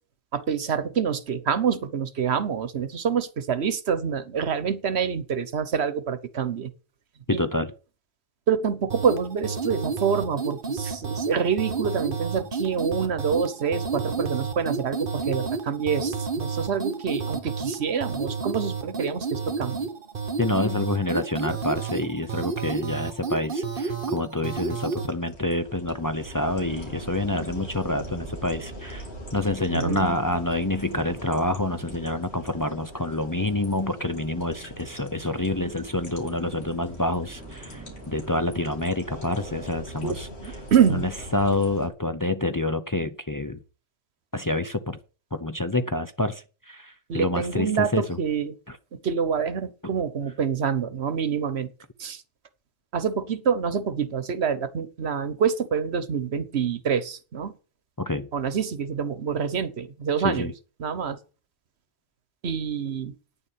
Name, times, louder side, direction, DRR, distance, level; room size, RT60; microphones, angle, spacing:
voice 1, 0.3-6.7 7.3-7.4 8.5-19.9 29.7-30.1 40.0-41.0 47.1-48.5 48.9-51.7 52.0-52.2 52.9-57.5 58.3-60.5 60.8-61.2 62.4-63.1, right 7 dB, 75° right, 1.3 m, -26 dB
voice 2, 7.3-7.7 20.4-29.1 29.3-40.6 40.9-43.6 44.3-45.0 45.3-48.2 48.7-48.8 58.0-58.3 60.2-60.5, left 2 dB, 20° left, 0.7 m, -27 dB
sound 1, 8.9-25.1, right 4 dB, 55° right, 1.4 m, -31 dB
sound 2, 25.0-41.9, equal, 80° left, 4.0 m, -41 dB
sound 3, 30.8-38.9, right 1 dB, 15° right, 1.3 m, -49 dB
9.7 x 7.0 x 8.5 m
omnidirectional pair, 1.1 m